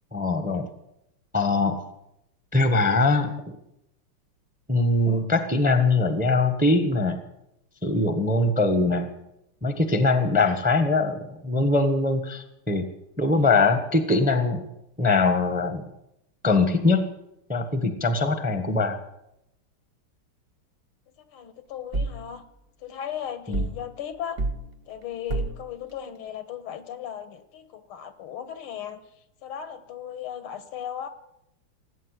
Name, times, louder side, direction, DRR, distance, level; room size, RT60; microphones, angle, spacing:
voice 1, 0.1-0.7 1.3-1.8 2.5-3.6 4.7-7.2 7.8-9.1 9.6-12.8 13.2-14.6 15.0-15.8 16.4-17.1 17.5-19.0 23.5-23.6, left 3 dB, 5° right, 8 dB, 0.9 m, -22 dB
voice 2, 21.2-22.4 22.8-24.4 24.9-29.0 29.4-31.1, left 9 dB, 80° left, 11 dB, 2.0 m, -36 dB
sound 1, 21.9-22.2 23.5-23.8 24.4-24.6 25.3-25.6, right 3 dB, 50° right, 0.6 m, -28 dB
18.0 x 8.8 x 8.3 m, 0.85 s
omnidirectional pair, 2.4 m